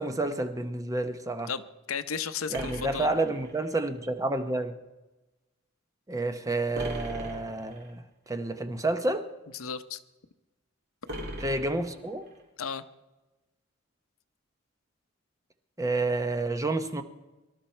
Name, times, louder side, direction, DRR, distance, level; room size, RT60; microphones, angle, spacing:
voice 1, 0.0-1.5 2.5-4.7 6.1-8.0 8.3-9.2 11.4-12.3 15.8-17.0, right 2 dB, 15° right, 0.8 m, -29 dB
voice 2, 1.9-3.1 9.6-10.0 12.6-12.8, left 6 dB, 75° left, 0.8 m, -33 dB
sound 1, 2.5-3.9 6.7-7.9 11.1-12.4, equal, 55° right, 2.5 m, -39 dB
24.0 x 12.0 x 4.4 m
head